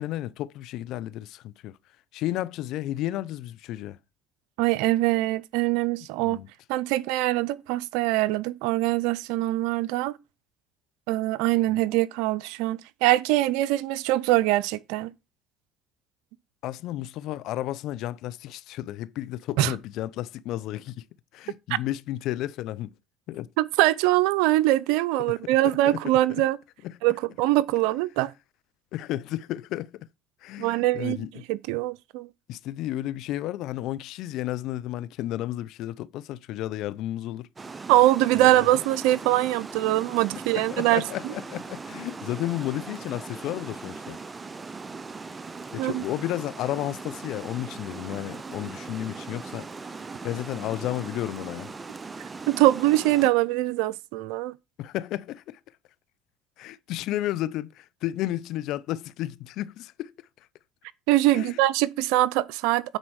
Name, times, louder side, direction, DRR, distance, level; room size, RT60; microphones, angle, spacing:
voice 1, 0.0-1.8 2.1-4.0 6.3-6.5 16.6-21.0 21.3-22.9 23.3-23.5 25.8-26.0 26.8-27.0 28.9-30.1 30.4-31.3 32.5-37.5 38.3-38.5 40.5-44.2 45.7-49.7 50.2-51.7 54.8-55.6 56.6-60.1 61.3-61.5, left 14 dB, 65° left, 0.6 m, -32 dB
voice 2, 4.6-6.4 6.7-10.2 11.1-15.1 19.6-19.7 23.6-26.6 27.0-28.3 30.6-32.3 37.9-41.3 45.8-46.0 52.5-54.6 61.1-63.0, right 16 dB, 75° right, 0.5 m, -23 dB
Water, 37.6-53.3, right 4 dB, 25° right, 0.7 m, -39 dB
9.0 x 4.3 x 6.4 m
supercardioid pair, 80°, 0 cm